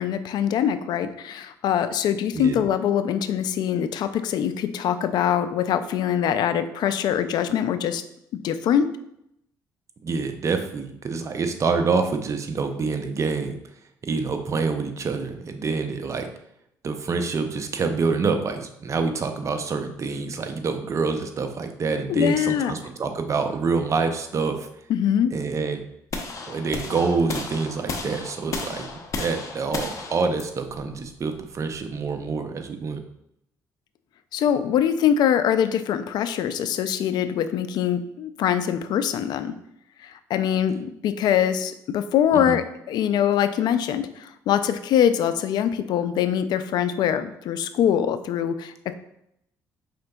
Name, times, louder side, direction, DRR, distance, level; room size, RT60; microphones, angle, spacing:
voice 1, 0.0-8.0 8.4-8.9 22.1-22.8 24.9-25.3 34.3-39.5 40.0-48.9, left 9 dB, 70° left, 11 dB, 0.4 m, -23 dB
voice 2, 10.0-13.6 14.0-16.3 16.8-24.7 25.3-25.8 26.5-28.8 29.2-33.0 42.3-42.6, right 4 dB, 45° right, 6 dB, 0.6 m, -26 dB
sound 1, 26.1-32.2, left 4 dB, 45° left, 0.7 m, -34 dB
5.0 x 3.7 x 2.3 m, 0.76 s
supercardioid pair, 80°, 8 cm